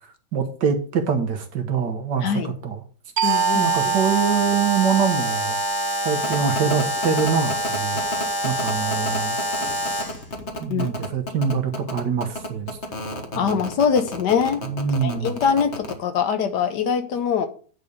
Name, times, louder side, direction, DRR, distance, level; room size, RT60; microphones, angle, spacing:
voice 1, 0.3-2.8 3.5-5.6 6.1-8.0 8.4-9.4 10.6-12.8 13.3-13.6 14.6-15.3, right 6 dB, 75° right, 6 dB, 1.9 m, -24 dB
voice 2, 2.2-2.5 3.2-3.9 10.7-10.9 13.3-14.7 15.0-17.5, left 7 dB, 75° left, 9 dB, 1.5 m, -23 dB
Alarm, 3.2-10.2, equal, 15° left, 1.4 m, -26 dB
sound 1, 3.2-8.5, right 10 dB, 55° right, 0.7 m, -28 dB
sound 2, 6.2-15.9, left 1 dB, 40° left, 1.5 m, -31 dB
9.8 x 4.1 x 6.5 m, 0.43 s
omnidirectional pair, 1.9 m